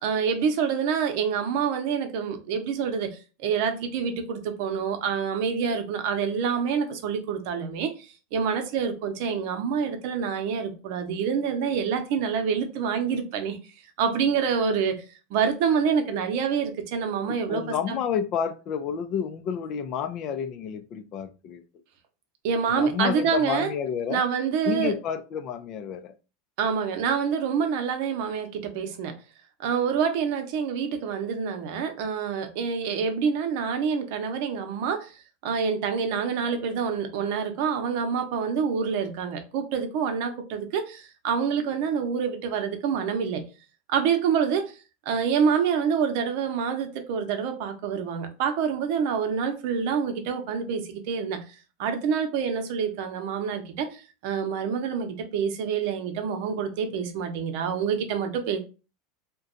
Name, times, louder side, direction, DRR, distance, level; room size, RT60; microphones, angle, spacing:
voice 1, 0.0-3.1 3.4-13.6 14.0-15.0 15.3-17.6 17.9-18.0 22.4-23.7 24.1-24.9 26.6-29.1 29.6-35.1 35.4-43.4 43.9-44.7 45.1-51.4 51.8-58.6, right 6 dB, 65° right, 0.7 m, -27 dB
voice 2, 17.3-21.6 22.7-24.2 24.6-26.1, left 8 dB, 45° left, 0.4 m, -30 dB
2.6 x 2.2 x 3.8 m
supercardioid pair, 120°, 0 cm